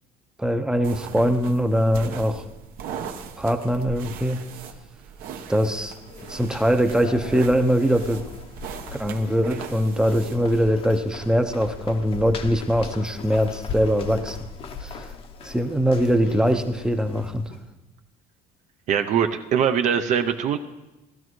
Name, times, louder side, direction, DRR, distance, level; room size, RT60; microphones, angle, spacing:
voice 1, 0.4-2.4 3.4-4.4 5.5-5.9 6.3-8.2 9.0-14.4 14.8-15.1 15.4-17.5, equal, 5° right, 7 dB, 0.6 m, -22 dB
sound 1, 0.8-10.7, right 7 dB, 70° right, 1.1 m, -39 dB
sound 2, 5.7-17.7, left 4 dB, 35° left, 0.8 m, -39 dB
voice 2, 18.9-20.6, right 8 dB, 50° right, 6 dB, 0.6 m, -22 dB
17.5 x 12.5 x 3.1 m, 1.0 s
cardioid pair, 155°, 16 cm